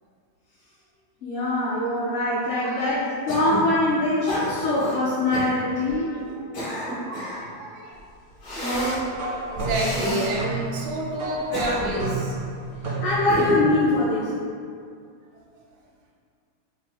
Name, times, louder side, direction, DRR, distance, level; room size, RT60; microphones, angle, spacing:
voice 1, 1.2-6.2 13.0-14.4, left 2 dB, 80° left, -13 dB, 2.6 m, -23 dB
voice 2, 2.6-2.9 5.8-6.2 6.5-8.0 9.5-12.4, right 1 dB, 85° right, -3 dB, 2.1 m, -30 dB
Cough, 3.3-3.7 4.3-5.0 5.3-5.5 6.3-7.5 8.4-9.0 9.7-10.3 11.3-12.1 13.3-13.8, equal, 55° left, 2.4 m, -30 dB
sound 1, 8.7-13.5, right 2 dB, 40° right, 0.8 m, -31 dB
6.5 x 3.0 x 2.2 m, 2.3 s
omnidirectional pair, 3.6 m